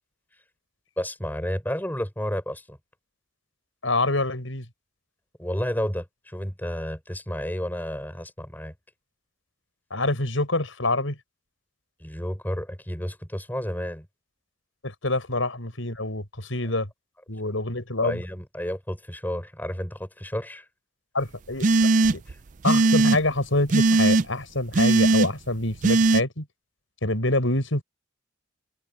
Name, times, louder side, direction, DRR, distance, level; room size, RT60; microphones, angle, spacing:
voice 1, 1.0-2.8 5.4-8.7 12.0-14.1 18.0-20.6 22.3-22.4, equal, 10° left, 4.4 m, -31 dB
voice 2, 3.8-4.7 9.9-11.2 14.8-16.9 17.3-18.2 21.1-21.7 22.1-22.2 22.6-26.5 27.0-27.8, left 2 dB, 80° left, 5.9 m, -26 dB
sound 1, 21.6-22.3 22.6-23.2 23.7-24.2 24.7-25.3 25.8-26.2, right 3 dB, 40° right, 0.4 m, -19 dB
head